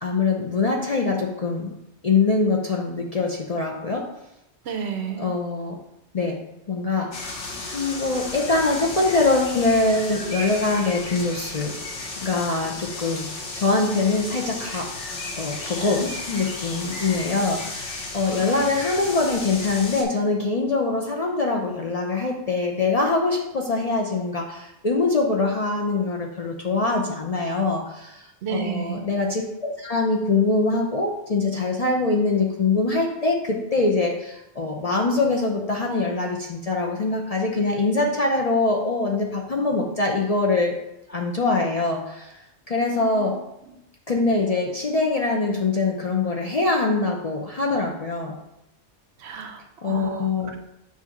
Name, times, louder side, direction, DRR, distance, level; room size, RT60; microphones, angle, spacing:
voice 1, 0.0-1.7 2.0-4.1 5.2-5.8 6.1-6.4 6.7-7.2 7.7-11.8 12.2-14.9 15.4-28.2 28.5-40.8 41.1-42.3 42.7-43.4 44.1-48.4 49.8-50.5, left 3 dB, 40° left, -1 dB, 0.7 m, -23 dB
voice 2, 4.6-5.3 18.3-18.7 28.4-29.0 43.0-43.3 49.2-50.3, right 6 dB, 65° right, 5 dB, 1.0 m, -32 dB
sound 1, 7.1-20.0, left 2 dB, 80° left, 1.3 m, -34 dB
7.2 x 2.8 x 5.8 m, 0.84 s
omnidirectional pair, 1.2 m